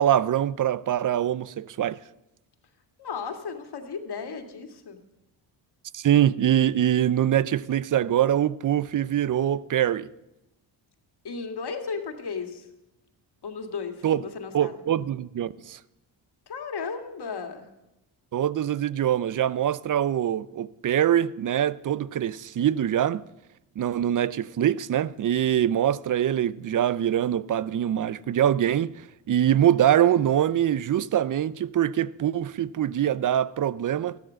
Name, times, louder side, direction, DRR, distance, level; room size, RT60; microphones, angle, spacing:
voice 1, 0.0-2.0 5.9-10.1 14.0-14.2 14.5-15.8 18.3-23.3 23.8-34.2, right 10 dB, 40° right, 0.6 m, -24 dB
voice 2, 3.0-5.0 11.2-12.7 13.4-14.8 16.5-17.7, left 5 dB, 55° left, 2.2 m, -35 dB
13.5 x 12.0 x 6.4 m
supercardioid pair, 65°, 47 cm